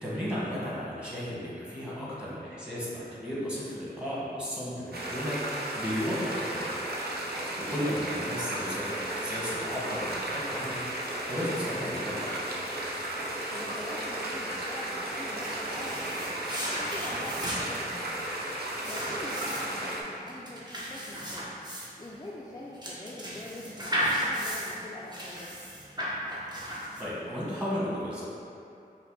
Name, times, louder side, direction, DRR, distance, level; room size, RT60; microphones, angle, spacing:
voice 1, 0.0-6.8 7.3-10.8 11.3-12.4 27.0-28.2, equal, 5° right, -8 dB, 1.3 m, -34 dB
sound 1, 4.9-20.0, right 1 dB, 70° right, 0.6 m, -34 dB
voice 2, 7.4-7.7 13.5-16.4 16.7-18.3 18.9-21.5 22.0-25.5, left 1 dB, 20° left, -6 dB, 0.4 m, -44 dB
sound 2, 15.4-27.3, equal, 25° right, 0.9 m, -35 dB
5.3 x 2.2 x 4.0 m, 2.6 s
wide cardioid pair, 65°, 17 cm